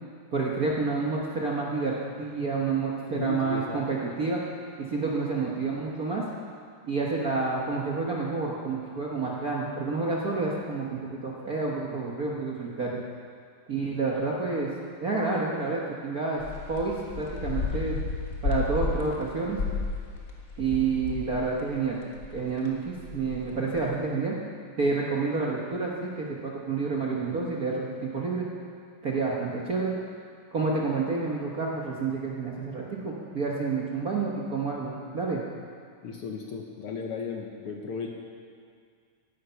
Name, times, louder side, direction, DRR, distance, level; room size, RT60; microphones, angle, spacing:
voice 1, 0.3-4.4 4.9-6.2 6.9-13.0 13.7-14.7 15.0-16.4 16.7-18.0 18.4-19.6 20.6-22.0 22.3-24.4 24.8-28.5 29.0-30.0 30.5-35.4, right 4 dB, 65° right, -3 dB, 0.9 m, -29 dB
voice 2, 3.1-3.8 36.0-38.1, left 5 dB, 70° left, 1 dB, 1.4 m, -35 dB
sound 1, 16.4-21.8 22.1-23.8, left 3 dB, 45° left, 1.1 m, -33 dB
16.5 x 11.0 x 5.7 m, 2.2 s
omnidirectional pair, 3.6 m